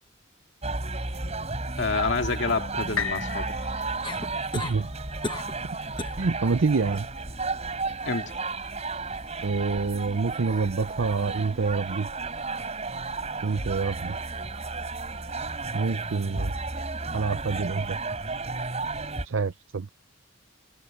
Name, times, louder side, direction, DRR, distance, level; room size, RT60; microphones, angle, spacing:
sound 1, 0.6-19.3, right 3 dB, 35° right, 4.0 m, -33 dB
voice 1, 1.8-3.5 8.1-8.4, left 4 dB, 60° left, 2.1 m, -28 dB
sound 2, 3.0-6.9 7.5-7.6, left 7 dB, 90° left, 1.2 m, -37 dB
sound 3, 4.0-4.8 5.2-5.6 6.0-6.2 6.7-7.1 8.9-9.0, left 3 dB, 25° left, 1.3 m, -34 dB
voice 2, 4.5-4.9 6.2-7.0 9.4-12.1 13.4-14.1 15.7-16.5 17.1-18.0 19.2-19.9, right 4 dB, 70° right, 0.6 m, -27 dB
head